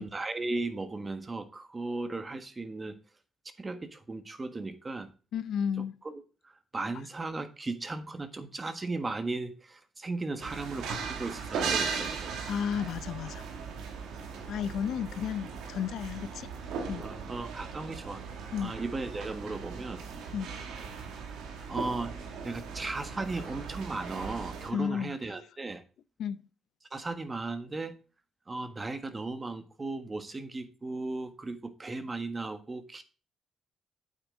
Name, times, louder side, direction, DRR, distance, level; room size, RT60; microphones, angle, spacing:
voice 1, 0.0-2.9 3.6-5.1 6.0-12.3 16.9-18.2 18.6-20.0 21.7-22.2 22.4-25.8 26.9-27.9 28.5-33.0, right 3 dB, 25° right, 1.4 m, -36 dB
voice 2, 5.3-5.9 12.5-13.4 14.5-16.5 16.9-17.0 18.5-18.7 20.3-20.5 24.7-25.2 26.2-26.4, left 8 dB, 75° left, 0.6 m, -32 dB
sound 1, 10.4-24.7, right 5 dB, 90° right, 2.2 m, -38 dB
9.1 x 8.2 x 3.8 m
cardioid pair, 90°, 0 cm